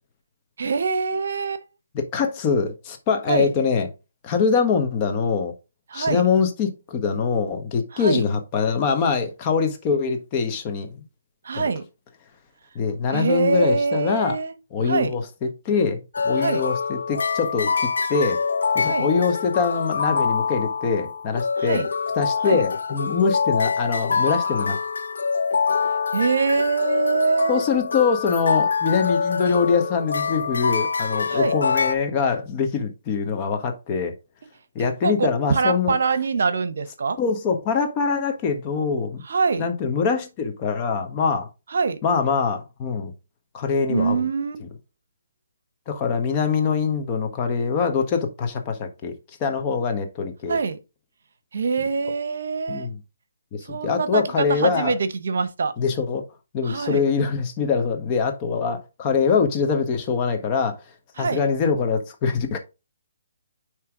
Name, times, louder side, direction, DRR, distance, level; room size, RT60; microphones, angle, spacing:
voice 1, 0.6-1.6 3.3-3.5 5.9-6.3 7.9-8.3 11.4-11.8 13.1-14.5 14.8-15.1 16.4-16.6 18.8-19.1 21.6-21.9 22.4-22.7 26.1-27.6 31.3-31.6 35.0-37.2 39.2-39.7 41.7-42.0 43.9-44.6 50.5-50.8 51.5-52.9 53.6-55.7 56.6-57.1 61.2-61.4, right 4 dB, 65° right, 0.8 m, -24 dB
voice 2, 1.9-3.9 4.2-5.5 5.9-11.0 11.5-11.7 12.7-14.4 14.7-18.4 18.7-21.8 22.1-24.8 27.5-34.1 34.7-36.0 37.2-39.2 39.6-41.5 42.0-43.1 43.5-44.3 44.6-44.7 45.9-49.1 49.4-50.6 52.7-53.0 53.5-54.9 55.8-56.3 56.5-60.8 61.2-62.6, left 5 dB, 30° left, 1.3 m, -23 dB
sound 1, 16.1-32.0, left 5 dB, 75° left, 0.7 m, -25 dB
9.5 x 3.2 x 3.6 m
hypercardioid pair, 145°, 0 cm